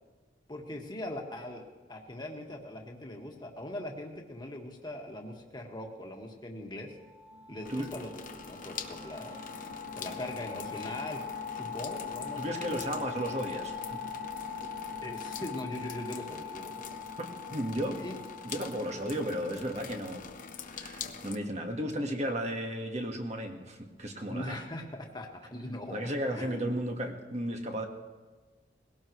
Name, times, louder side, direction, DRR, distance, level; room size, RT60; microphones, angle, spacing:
voice 1, 0.5-6.9 7.5-9.4 10.0-11.2 11.6-12.6 14.6-14.7 15.0-16.8 18.0-18.2 24.3-26.0 26.3-26.7, left 1 dB, 25° left, 1 dB, 1.7 m, -41 dB
sound 1, 7.0-20.4, left 6 dB, 90° right, 2.0 m, -41 dB
sound 2, 7.6-21.4, left 6 dB, 45° left, 0.9 m, -45 dB
voice 2, 12.4-14.0 17.2-18.0 18.4-20.2 20.7-24.6 25.9-27.8, equal, 40° right, 3 dB, 1.6 m, -34 dB
20.5 x 17.0 x 3.2 m, 1.3 s
head